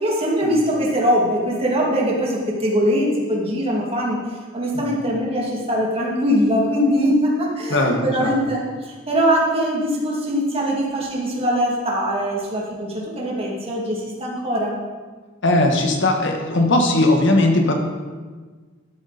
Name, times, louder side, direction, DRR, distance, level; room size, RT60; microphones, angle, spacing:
voice 1, 0.0-4.2 4.5-14.7, equal, 30° right, -3 dB, 2.4 m, -22 dB
voice 2, 7.7-8.3 15.4-17.8, left 2 dB, 65° left, 3 dB, 1.4 m, -18 dB
13.0 x 8.5 x 4.2 m, 1.4 s
head